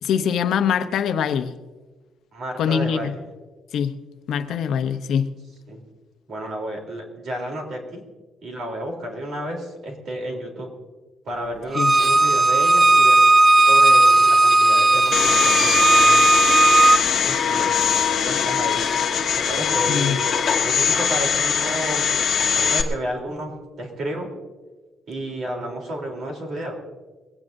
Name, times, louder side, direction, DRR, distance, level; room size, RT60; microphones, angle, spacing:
voice 1, 0.0-1.5 2.6-3.2 3.7-3.9 4.3-5.3 11.7-11.9 19.9-20.2, left 8 dB, 60° left, 8 dB, 0.8 m, -23 dB
voice 2, 2.3-3.1 5.7-5.8 6.3-8.0 8.4-10.7 11.2-13.2 13.6-16.2 17.2-17.7 18.2-18.8 19.3-20.3 20.6-24.3 25.1-26.8, right 1 dB, 50° right, 1 dB, 3.5 m, -31 dB
Bowed string instrument, 11.7-17.0, right 2 dB, 25° right, 0.4 m, -15 dB
Domestic sounds home sounds, 15.1-22.8, left 7 dB, 35° left, 1.4 m, -21 dB
21.5 x 17.5 x 2.7 m, 1.3 s
cardioid pair, 160°, 0 cm